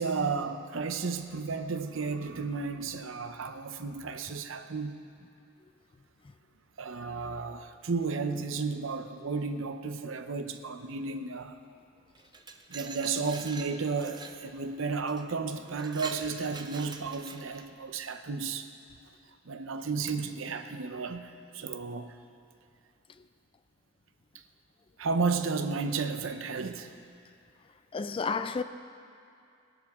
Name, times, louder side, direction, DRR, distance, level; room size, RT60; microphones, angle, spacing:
voice 1, 0.0-5.0 6.8-11.6 12.7-18.7 19.5-22.1 25.0-26.9, right 4 dB, 70° right, 0.7 m, -33 dB
Glass, 12.1-14.4 15.1-15.2 15.6-17.7, right 4 dB, 20° right, 0.6 m, -44 dB
voice 2, 27.9-28.6, left 4 dB, 25° left, 0.3 m, -31 dB
18.5 x 12.0 x 3.6 m
head